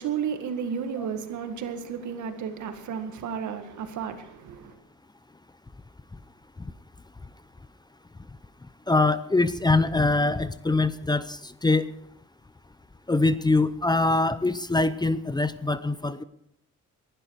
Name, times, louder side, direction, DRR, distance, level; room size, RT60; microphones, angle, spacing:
voice 1, 0.0-4.8, right 7 dB, 75° right, 1.9 m, -32 dB
voice 2, 8.9-11.9 13.1-16.2, left 2 dB, 15° left, 0.7 m, -23 dB
21.0 x 11.5 x 4.7 m
cardioid pair, 90°, 30 cm